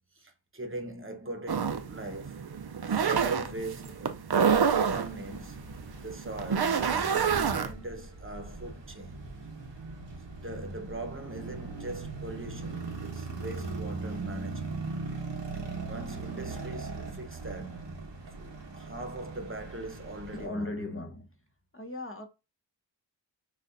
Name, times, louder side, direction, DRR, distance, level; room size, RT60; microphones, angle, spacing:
voice 1, 0.2-2.4 2.9-4.3 4.6-5.7 6.0-9.2 10.4-14.8 15.5-15.6 15.9-17.8 18.4-20.9, right 2 dB, 30° right, 0.9 m, -41 dB
sound 1, 1.5-7.7, right 6 dB, 60° right, 0.6 m, -28 dB
sound 2, 4.5-20.5, right 3 dB, 85° right, 1.0 m, -40 dB
voice 2, 20.3-21.2 21.7-22.3, left 2 dB, 30° left, 0.8 m, -36 dB
6.3 x 2.5 x 2.6 m
wide cardioid pair, 50°, 43 cm